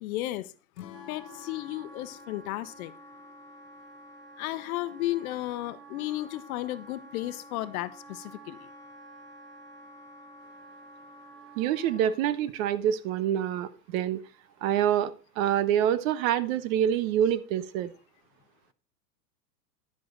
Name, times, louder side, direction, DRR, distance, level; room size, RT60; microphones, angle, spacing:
voice 1, 0.0-0.5 1.1-2.9 4.4-8.7, left 16 dB, 60° left, 14 dB, 0.9 m, -34 dB
Acoustic guitar / Strum, 0.7-4.0, left 13 dB, 80° left, 1.3 m, -50 dB
Wind instrument woodwind instrument, 0.9-12.2, right 1 dB, 25° right, 2.0 m, -50 dB
voice 2, 11.6-14.2 14.6-17.9, right 10 dB, 55° right, 16 dB, 1.0 m, -26 dB
10.5 x 7.7 x 3.8 m, 0.35 s
hypercardioid pair, 105°, 48 cm